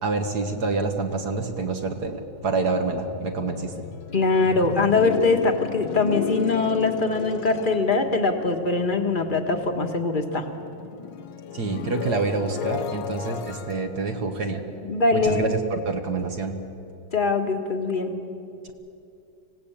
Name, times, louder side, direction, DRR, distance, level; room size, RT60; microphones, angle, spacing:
voice 1, 0.0-3.8 11.5-14.6 15.1-16.6 18.6-18.7, right 3 dB, 60° right, 4 dB, 1.9 m, -27 dB
sound 1, 2.3-10.0 10.4-15.5, left 9 dB, 80° left, 1.5 m, -35 dB
voice 2, 4.1-10.5 14.8-15.5 17.1-18.1, left 3 dB, 30° left, 5 dB, 1.6 m, -22 dB
25.0 x 17.5 x 8.8 m, 2.7 s
omnidirectional pair, 1.9 m